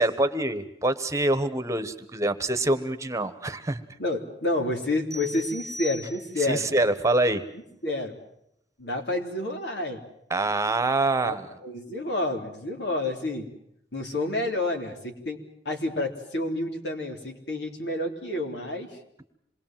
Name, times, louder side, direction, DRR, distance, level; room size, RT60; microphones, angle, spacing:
voice 1, 0.0-3.8 6.4-7.4 10.3-11.5, right 2 dB, 20° right, 10 dB, 1.2 m, -25 dB
voice 2, 4.0-6.7 7.5-8.1 8.8-10.0 11.2-11.4 11.6-13.5 13.9-15.4 15.7-18.9, left 2 dB, 85° left, 3 dB, 3.5 m, -29 dB
sound 1, 5.1-6.6, left 1 dB, ahead, 2.3 m, -40 dB
27.0 x 21.5 x 7.5 m, 0.77 s
head